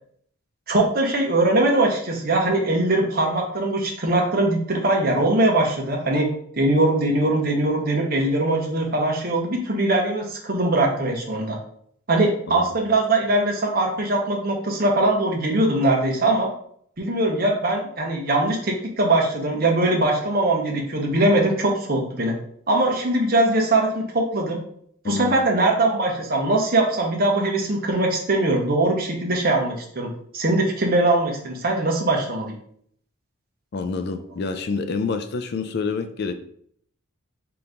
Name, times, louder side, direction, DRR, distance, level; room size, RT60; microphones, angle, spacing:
voice 1, 0.7-6.3 6.6-11.6 12.1-16.5 17.0-22.3 22.7-24.6 25.0-32.5, right 2 dB, 40° right, 0 dB, 0.8 m, -21 dB
voice 2, 25.0-25.5 33.7-36.3, left 4 dB, 50° left, 8 dB, 0.3 m, -27 dB
3.8 x 2.9 x 3.5 m, 0.64 s
head